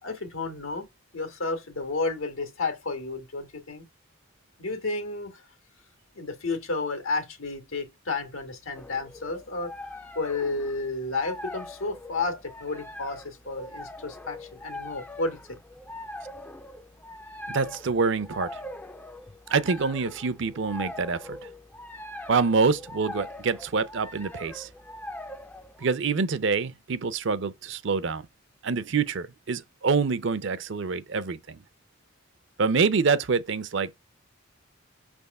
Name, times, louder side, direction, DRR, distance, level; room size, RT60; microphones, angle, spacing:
voice 1, 0.0-0.9 1.1-3.8 4.6-5.4 6.1-9.7 10.1-15.6, left 3 dB, 85° left, 1.8 m, -32 dB
sound 1, 8.7-25.9, left 1 dB, 10° left, 0.4 m, -42 dB
voice 2, 17.5-18.6 19.5-21.4 22.3-24.7 25.8-28.3 28.6-31.6 32.6-33.9, right 4 dB, 60° right, 0.6 m, -26 dB
6.2 x 3.5 x 5.3 m
head